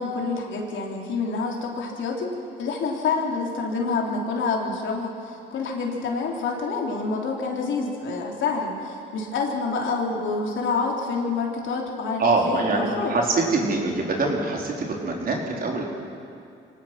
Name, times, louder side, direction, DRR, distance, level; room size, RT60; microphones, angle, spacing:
voice 1, 0.0-2.3 2.6-13.2, left 4 dB, 75° left, 0 dB, 3.5 m, -27 dB
voice 2, 12.2-15.8, right 3 dB, 45° right, -1 dB, 4.1 m, -24 dB
24.5 x 18.0 x 5.9 m, 2.5 s
cardioid pair, 90°, 20 cm